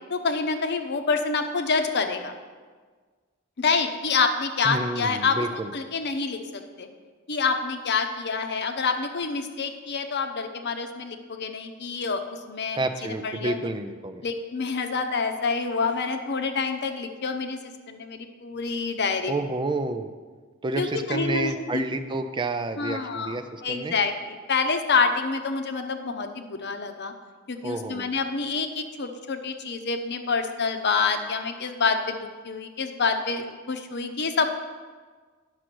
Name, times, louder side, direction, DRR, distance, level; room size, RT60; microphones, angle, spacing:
voice 1, 0.1-2.3 3.6-5.4 5.7-6.9 7.3-12.8 13.2-13.6 14.2-19.3 20.8-21.8 22.8-23.4 23.6-27.1 27.5-34.5, left 4 dB, 55° left, 7 dB, 0.8 m, -27 dB
voice 2, 4.6-5.7 12.7-14.3 19.3-20.1 20.6-23.9 27.6-28.1, right 2 dB, 25° right, 9 dB, 0.4 m, -29 dB
9.8 x 6.3 x 6.0 m, 1.5 s
head